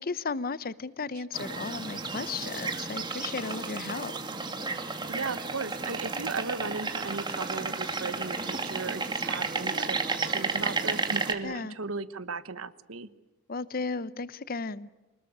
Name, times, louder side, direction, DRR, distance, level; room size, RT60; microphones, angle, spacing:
voice 1, 0.0-4.1 11.4-11.8 13.5-14.9, left 4 dB, 45° left, 17 dB, 0.8 m, -34 dB
sound 1, 1.3-11.3, right 3 dB, 20° right, 2.1 m, -32 dB
voice 2, 5.1-13.1, right 4 dB, 80° right, 14 dB, 1.2 m, -36 dB
25.5 x 20.5 x 8.6 m, 1.1 s
head